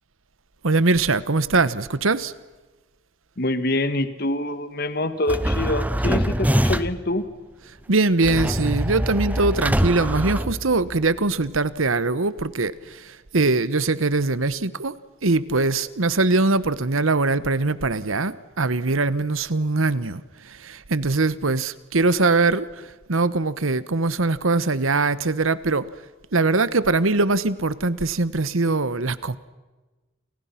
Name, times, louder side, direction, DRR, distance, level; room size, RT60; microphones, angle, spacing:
voice 1, 0.6-2.3 7.9-14.9 15.2-25.9 26.3-29.4, right 3 dB, 80° right, 16 dB, 1.2 m, -22 dB
voice 2, 3.4-7.3, left 1 dB, 50° left, 11 dB, 1.7 m, -25 dB
sound 1, 5.3-7.1 8.2-11.1, equal, 10° right, 0.8 m, -24 dB
30.0 x 29.0 x 5.9 m, 1.2 s
head